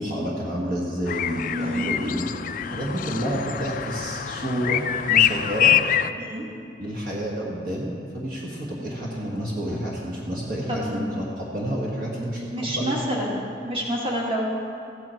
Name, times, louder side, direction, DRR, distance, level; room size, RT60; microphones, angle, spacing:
voice 1, 0.0-2.3 2.7-5.7 6.8-13.0, equal, 50° right, -4 dB, 1.5 m, -29 dB
sound 1, 1.1-6.1, left 10 dB, 45° left, 0.3 m, -24 dB
voice 2, 1.5-1.9 6.2-6.5 10.7-11.0 12.4-13.4 13.6-14.4, right 1 dB, 30° right, -3 dB, 1.8 m, -28 dB
14.5 x 9.6 x 4.5 m, 2.5 s
head